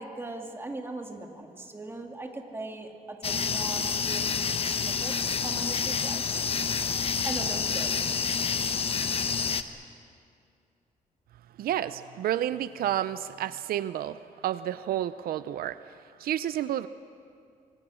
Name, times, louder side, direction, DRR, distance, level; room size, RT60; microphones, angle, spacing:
voice 1, 0.0-4.4 4.7-6.7 7.2-8.4, right 2 dB, 15° right, 3 dB, 2.3 m, -40 dB
sound 1, 3.2-9.6, left 6 dB, 40° left, 1.0 m, -28 dB
voice 2, 11.6-15.8 16.2-16.9, right 12 dB, 85° right, 14 dB, 0.6 m, -30 dB
26.5 x 24.0 x 6.3 m, 2.4 s
cardioid pair, 130°, 15 cm